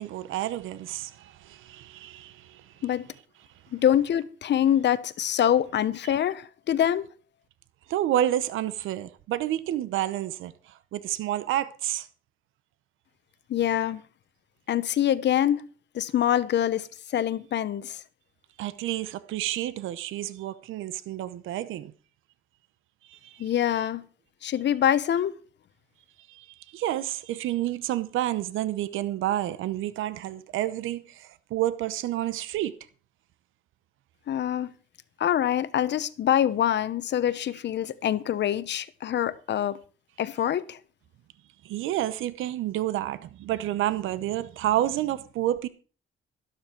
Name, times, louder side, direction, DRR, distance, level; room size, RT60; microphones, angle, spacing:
voice 1, 0.0-2.8 6.0-6.1 7.9-12.1 18.6-21.9 23.1-23.5 23.7-23.9 26.3-32.7 41.6-45.7, right 13 dB, 85° right, 0.8 m, -30 dB
voice 2, 3.7-7.0 13.5-14.0 14.7-15.7 15.9-16.9 17.1-18.0 23.4-24.0 24.4-25.3 34.3-34.7 35.2-39.8 40.2-40.8, left 10 dB, 65° left, 1.0 m, -25 dB
13.0 x 12.0 x 4.5 m
cardioid pair, 90°, 20 cm